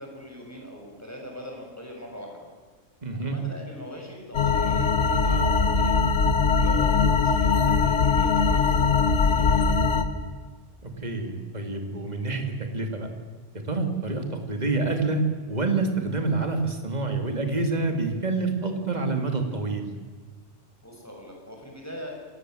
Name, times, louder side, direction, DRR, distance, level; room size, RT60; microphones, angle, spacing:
voice 1, 0.0-2.5 3.1-6.0 6.5-9.8 20.8-22.2, left 1 dB, 10° left, 0 dB, 6.6 m, -41 dB
voice 2, 3.0-3.4 10.8-13.1 13.7-19.9, right 3 dB, 35° right, 5 dB, 2.8 m, -27 dB
sound 1, 4.3-10.0, left 5 dB, 65° left, 1.8 m, -21 dB
27.0 x 19.5 x 7.9 m, 1.4 s
omnidirectional pair, 1.3 m